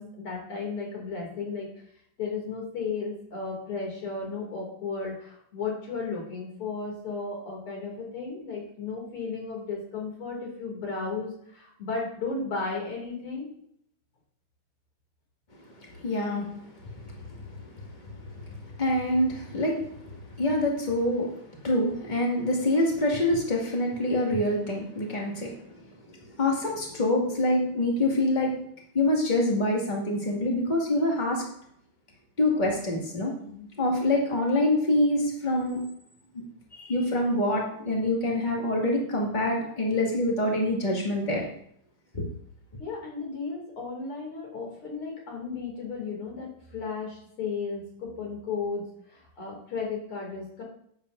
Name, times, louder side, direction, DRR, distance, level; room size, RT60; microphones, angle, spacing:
voice 1, 0.0-1.7 2.2-13.5 33.3-33.7 42.8-50.6, left 4 dB, 75° left, -1 dB, 3.6 m, -34 dB
voice 2, 16.0-16.5 18.8-20.1 20.4-21.3 21.6-25.6 26.4-28.5 28.9-31.4 32.4-33.3 33.8-35.8 36.7-41.4 42.1-42.2, left 1 dB, 20° left, -2 dB, 2.1 m, -25 dB
11.0 x 8.6 x 2.6 m, 0.68 s
omnidirectional pair, 2.4 m